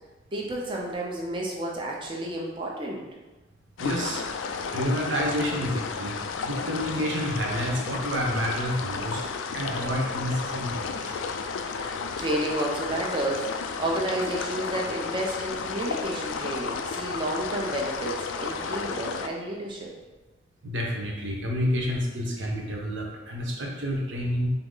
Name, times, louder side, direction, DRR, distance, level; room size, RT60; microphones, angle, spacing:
voice 1, 0.3-3.0 11.8-19.9, right 1 dB, 25° right, -2 dB, 0.7 m, -31 dB
sound 1, 3.8-19.3, left 5 dB, 80° left, 0.3 m, -33 dB
voice 2, 3.8-4.2 4.7-6.2 6.4-9.2 9.5-11.1 20.6-24.5, equal, 75° right, -1 dB, 0.9 m, -29 dB
5.7 x 2.0 x 3.8 m, 1.2 s
head